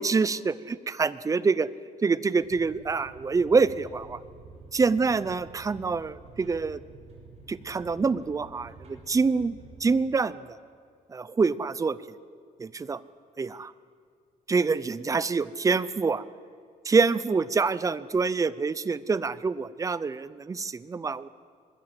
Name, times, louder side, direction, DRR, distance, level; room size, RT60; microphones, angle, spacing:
voice 1, 0.0-1.7 2.0-4.2 4.7-6.8 7.5-10.6 11.1-12.0 12.6-13.0 13.4-13.7 14.5-16.2 16.8-21.3, right 4 dB, 25° right, 17 dB, 0.7 m, -26 dB
sound 1, 2.4-9.9, right 4 dB, 50° right, 6.0 m, -49 dB
24.5 x 20.5 x 7.8 m, 2.2 s
cardioid pair, 140°, 14 cm